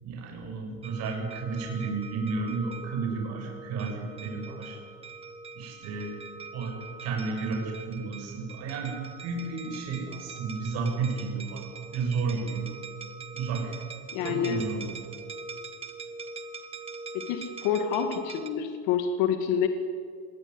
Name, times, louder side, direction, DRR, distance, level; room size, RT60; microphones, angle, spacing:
voice 1, 0.0-4.8 5.5-6.2 6.5-12.7 13.3-13.8 14.2-14.9, right 4 dB, 40° right, 1 dB, 7.8 m, -32 dB
sound 1, 0.8-18.5, right 4 dB, 15° right, 1.5 m, -43 dB
voice 2, 14.1-14.6 17.1-19.7, left 8 dB, 55° left, 7 dB, 2.2 m, -27 dB
26.0 x 21.5 x 9.9 m, 2.3 s
cardioid pair, 175°, 37 cm